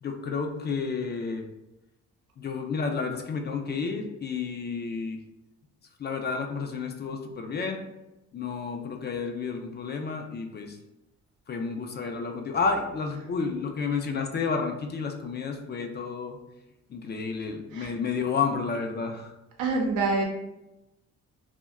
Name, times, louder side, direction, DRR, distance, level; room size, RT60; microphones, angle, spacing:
voice 1, 0.0-1.5 2.4-5.2 6.0-7.8 8.3-10.8 11.5-16.4 16.9-19.3, left 5 dB, 35° left, 4 dB, 0.4 m, -31 dB
voice 2, 19.6-20.2, right 3 dB, 85° right, 1 dB, 0.7 m, -26 dB
2.2 x 2.1 x 3.4 m, 0.94 s
cardioid pair, 90°, 30 cm